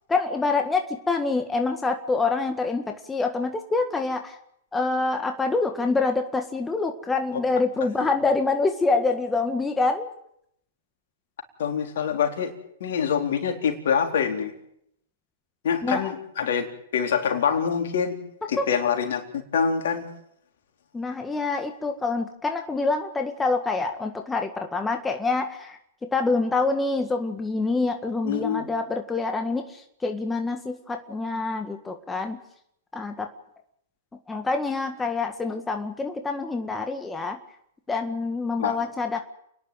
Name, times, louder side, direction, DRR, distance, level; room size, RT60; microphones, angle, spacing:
voice 1, 0.1-4.4 4.7-10.1 15.8-16.1 18.6-18.7 20.9-25.8 26.1-32.4 32.9-33.3 34.3-37.4 37.9-39.2, left 3 dB, 10° left, 4 dB, 1.8 m, -26 dB
voice 2, 11.6-12.5 12.8-14.5 15.6-16.7 16.9-18.2 18.5-20.1 28.2-28.6 38.6-38.8, left 7 dB, 70° left, 3 dB, 4.1 m, -25 dB
29.5 x 11.0 x 9.3 m, 0.76 s
hypercardioid pair, 120°, 0 cm